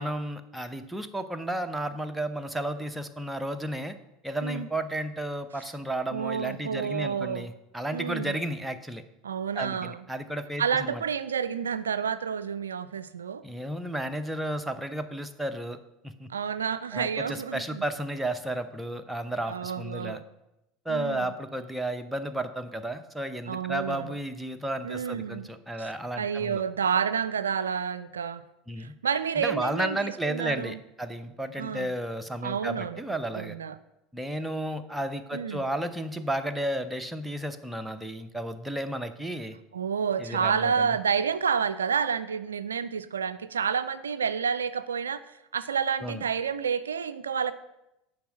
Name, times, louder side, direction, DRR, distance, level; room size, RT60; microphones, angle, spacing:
voice 1, 0.0-3.9 4.2-9.0 9.5-11.0 13.4-15.8 16.0-16.3 16.9-20.2 20.8-26.6 28.7-28.9 29.4-33.6 34.1-39.6 40.2-41.0 46.0-46.2, right 1 dB, 5° right, 8 dB, 0.7 m, -33 dB
voice 2, 6.1-7.5 7.9-8.4 9.2-10.0 10.6-13.4 16.3-17.8 19.5-20.2 20.9-21.3 23.5-24.1 24.8-25.5 25.8-25.9 26.2-28.4 28.8-30.8 31.6-31.9 32.4-33.0 33.4-33.8 35.3-35.6 39.7-45.2 45.5-47.5, right 7 dB, 75° right, 14 dB, 0.3 m, -29 dB
10.5 x 4.6 x 6.2 m, 0.90 s
figure-of-eight pair, 70°, 0 cm